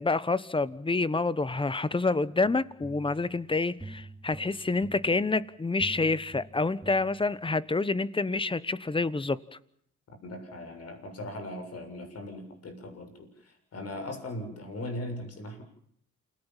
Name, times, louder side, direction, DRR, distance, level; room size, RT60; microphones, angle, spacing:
voice 1, 0.0-9.4, left 3 dB, 15° left, 17 dB, 1.1 m, -28 dB
sound 1, 2.4-7.7, right 2 dB, ahead, 4.3 m, -48 dB
voice 2, 10.2-15.6, left 1 dB, 55° left, 5 dB, 7.2 m, -39 dB
28.5 x 18.0 x 7.4 m, 0.68 s
cardioid pair, 90°, 30 cm